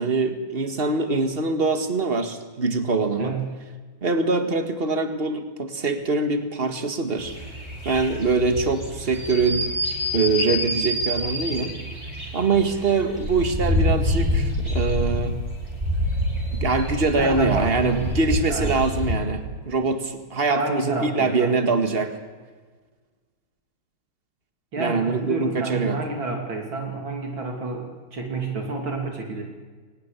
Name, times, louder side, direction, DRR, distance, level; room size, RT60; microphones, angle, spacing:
voice 1, 0.0-3.3 4.0-7.3 7.9-9.6 10.1-11.8 12.3-15.3 16.6-22.1 24.8-26.0, right 3 dB, 30° right, 8 dB, 2.0 m, -23 dB
voice 2, 3.2-3.5 17.1-18.8 20.5-21.6 24.7-29.4, right 3 dB, 65° right, 2 dB, 3.5 m, -29 dB
sound 1, 7.2-19.1, equal, 10° right, 5.1 m, -27 dB
22.5 x 19.5 x 8.4 m, 1.4 s
omnidirectional pair, 2.4 m